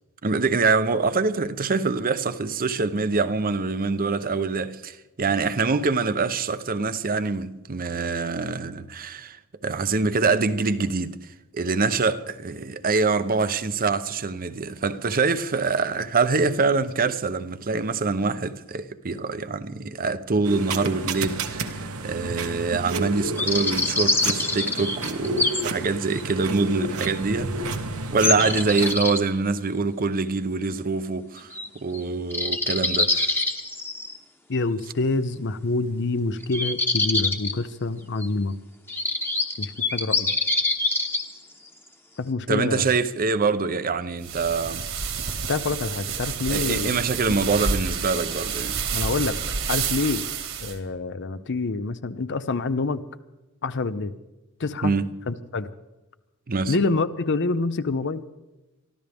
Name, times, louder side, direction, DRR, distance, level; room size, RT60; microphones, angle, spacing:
voice 1, 0.2-27.5 28.1-33.4 42.5-44.9 46.5-48.8 54.8-55.2 56.5-56.8, right 4 dB, 40° right, 0.7 m, -25 dB
sound 1, 20.4-29.0, right 2 dB, 80° right, 1.3 m, -31 dB
sound 2, 23.4-25.6 26.1-26.2 27.0-27.1 28.2-29.2 31.5-31.7 31.9-32.0 32.3-34.2 36.4-37.5 38.2-38.3 38.9-41.3, left 2 dB, 10° left, 1.1 m, -25 dB
voice 2, 34.5-38.6 39.6-40.3 42.2-42.9 45.5-47.0 48.9-49.3 49.7-50.2 50.6-53.0 53.6-54.1 54.6-54.9 55.3-55.7 56.7-58.2, left 3 dB, 55° left, 0.7 m, -26 dB
sound 3, 44.2-50.7, right 6 dB, 65° right, 1.9 m, -29 dB
23.5 x 14.0 x 3.5 m
head